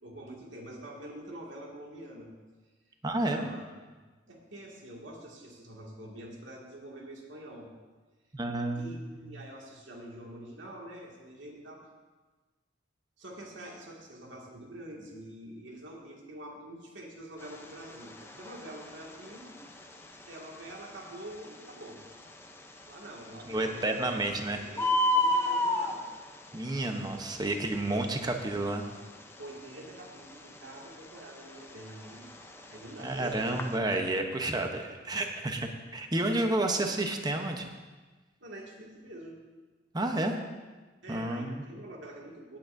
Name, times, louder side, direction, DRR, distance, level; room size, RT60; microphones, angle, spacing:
voice 1, 0.0-2.3 3.3-3.6 4.3-7.7 8.7-11.9 13.2-19.6 20.3-22.0 22.9-26.1 29.4-32.3 32.7-33.6 38.4-39.4 41.0-42.6, right 1 dB, 80° right, -2 dB, 2.2 m, -46 dB
voice 2, 3.0-3.5 8.3-8.9 9.2-9.3 23.5-24.6 26.5-28.8 33.0-37.6 39.9-40.4 41.1-41.6, right 2 dB, 20° right, 4 dB, 0.9 m, -30 dB
Bird, 17.4-33.8, left 1 dB, 15° left, 0.7 m, -34 dB
17.0 x 8.7 x 2.7 m, 1.3 s
head